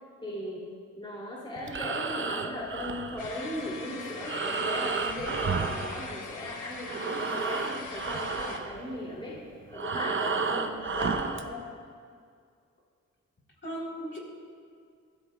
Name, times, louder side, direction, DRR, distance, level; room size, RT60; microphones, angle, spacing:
voice 1, 0.2-0.7 1.0-9.4 9.7-11.6, left 1 dB, 15° left, -5 dB, 2.8 m, -37 dB
Breathing, 1.6-6.6 6.8-11.5, right 4 dB, 40° right, 0.8 m, -32 dB
sound 1, 3.2-8.6, left 5 dB, 85° left, 1.1 m, -42 dB
voice 2, 13.6-14.2, equal, 40° left, -3 dB, 3.6 m, -37 dB
22.0 x 13.5 x 2.3 m, 2.2 s
cardioid pair, 65°, 30 cm